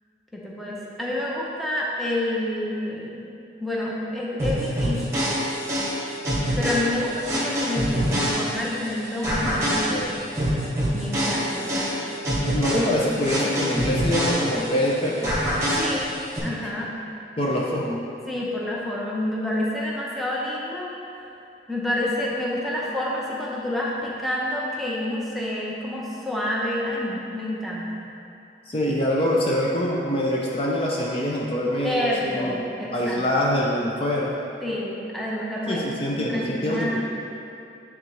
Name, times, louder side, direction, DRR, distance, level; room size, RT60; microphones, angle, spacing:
voice 1, 0.3-3.3 3.6-5.3 6.6-10.0 10.9-12.0 15.7-16.1 16.4-16.9 18.3-20.9 21.7-28.0 31.8-33.2 34.6-35.9 36.2-37.0, left 1 dB, ahead, -6 dB, 0.8 m, -28 dB
sound 1, 4.4-8.9 9.2-14.9 15.2-16.4, equal, 15° right, 1.4 m, -25 dB
voice 2, 9.9-10.2 12.4-15.4 17.4-18.0 28.7-32.6 32.9-34.4 35.7-37.0, left 1 dB, 30° left, -4 dB, 0.5 m, -25 dB
9.2 x 3.6 x 3.2 m, 2.6 s
head